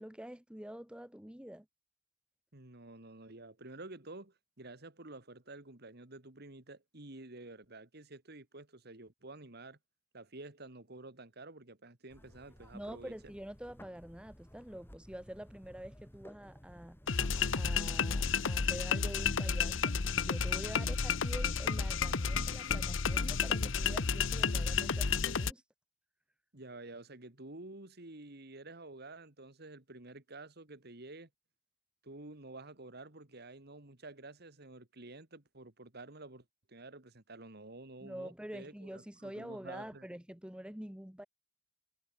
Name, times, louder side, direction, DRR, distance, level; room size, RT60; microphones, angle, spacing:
voice 1, 0.0-1.7 12.7-17.0 17.5-20.0 20.2-25.6 38.0-41.2, equal, 5° right, 1.0 m, -46 dB
voice 2, 2.5-9.8 10.1-13.1 20.8-20.9 26.5-31.3 32.0-40.0, right 2 dB, 55° right, 2.5 m, -50 dB
sound 1, 12.1-18.7, equal, 10° left, 2.8 m, -56 dB
sound 2, 17.1-25.5, left 5 dB, 85° left, 1.0 m, -31 dB
head